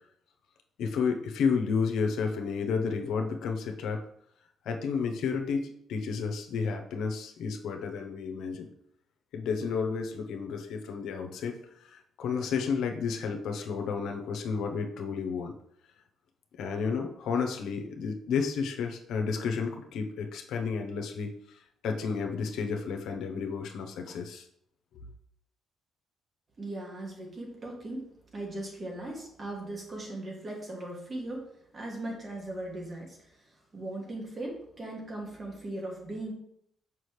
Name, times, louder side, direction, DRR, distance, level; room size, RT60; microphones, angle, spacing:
voice 1, 0.8-4.0 4.6-8.7 9.3-15.5 16.6-24.5, left 5 dB, 80° left, 4 dB, 0.8 m, -31 dB
voice 2, 26.6-36.3, right 1 dB, 35° right, -1 dB, 2.2 m, -39 dB
6.2 x 5.5 x 3.2 m, 0.72 s
cardioid pair, 90°, 0 cm